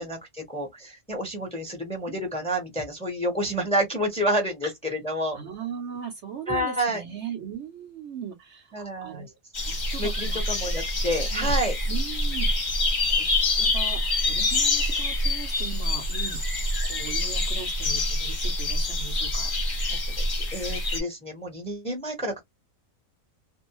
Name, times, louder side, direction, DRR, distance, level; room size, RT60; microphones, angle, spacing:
voice 1, 0.0-5.4 6.5-7.0 8.7-9.3 10.0-11.8 19.9-20.1 20.5-22.4, equal, 5° left, 0.8 m, -29 dB
voice 2, 5.3-10.7 11.3-11.6 11.9-12.5 13.2-13.3 13.6-16.4 16.9-19.5, right 7 dB, 60° right, 0.9 m, -38 dB
sound 1, 9.5-21.0, left 2 dB, 40° left, 1.0 m, -26 dB
2.6 x 2.1 x 2.9 m
omnidirectional pair, 1.5 m